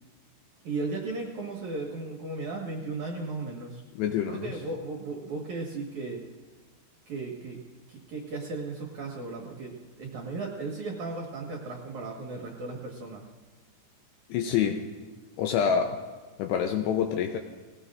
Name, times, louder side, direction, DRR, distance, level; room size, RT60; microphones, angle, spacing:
voice 1, 0.6-3.8 4.3-6.2 7.1-7.6 7.9-13.3, right 3 dB, 60° right, -1 dB, 2.1 m, -36 dB
voice 2, 4.0-4.6 14.3-14.9 15.4-16.0 16.4-17.4, left 8 dB, 85° left, 4 dB, 2.6 m, -27 dB
19.5 x 17.0 x 2.5 m, 1.4 s
omnidirectional pair, 5.4 m